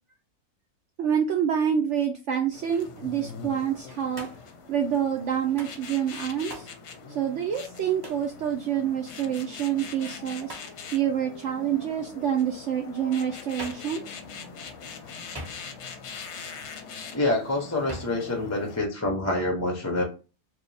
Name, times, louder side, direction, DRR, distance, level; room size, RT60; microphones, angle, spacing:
voice 1, 1.0-4.3 4.7-6.7 7.1-10.6 10.9-14.0, right 9 dB, 65° right, 2 dB, 0.7 m, -27 dB
sound 1, 2.5-18.8, left 5 dB, 60° left, 0.8 m, -42 dB
Hands, 4.1-4.6 5.6-5.8 6.5-6.8 8.0-8.3 10.5-10.8 13.6-13.9 15.3-15.9 17.9-18.2, right 1 dB, 20° right, 0.7 m, -41 dB
voice 2, 17.1-20.0, left 2 dB, 20° left, 2 dB, 0.5 m, -26 dB
4.7 x 2.3 x 3.3 m, 0.32 s
omnidirectional pair, 1.6 m